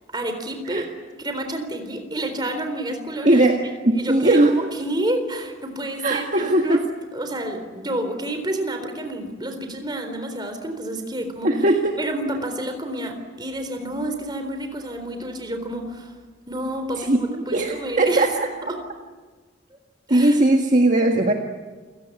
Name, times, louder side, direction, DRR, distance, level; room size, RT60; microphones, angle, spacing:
voice 1, 0.1-0.9 1.2-3.4 3.9-6.8 7.1-11.5 12.0-16.1 16.5-18.2 18.6-18.7 20.1-20.4, right 1 dB, 20° right, 7 dB, 4.0 m, -29 dB
voice 2, 3.2-4.5 6.0-6.8 11.4-12.0 17.0-18.3 20.1-21.3, right 1 dB, 40° right, 2 dB, 1.7 m, -19 dB
29.0 x 17.5 x 9.7 m, 1.4 s
head